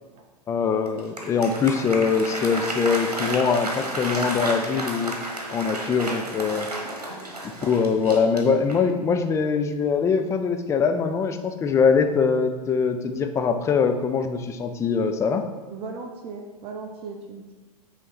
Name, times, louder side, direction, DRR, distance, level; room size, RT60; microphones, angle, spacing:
voice 1, 0.5-5.1 5.5-6.7 7.6-15.4, left 5 dB, 15° left, 6 dB, 0.4 m, -23 dB
Applause, 0.9-9.0, right 1 dB, 75° right, 1.2 m, -32 dB
voice 2, 15.7-17.5, right 4 dB, 30° right, 3 dB, 0.6 m, -37 dB
8.6 x 3.2 x 4.1 m, 1.2 s
figure-of-eight pair, 95°, 20 cm